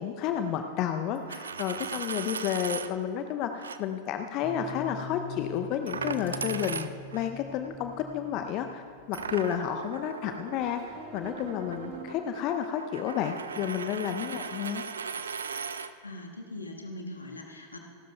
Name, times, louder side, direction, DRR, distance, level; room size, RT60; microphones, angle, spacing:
voice 1, 0.0-8.8 9.1-14.8, left 9 dB, 40° left, 7 dB, 0.6 m, -31 dB
Coin (dropping), 1.2-2.9 3.6-3.8 5.9-7.3 9.1-15.9, right 6 dB, 70° right, 0.4 m, -38 dB
sound 1, 4.4-12.0, left 1 dB, 30° right, 3.4 m, -44 dB
voice 2, 16.0-17.8, left 1 dB, 80° left, 2 dB, 1.5 m, -41 dB
27.5 x 12.5 x 2.3 m, 2.3 s
figure-of-eight pair, 90°, 0 cm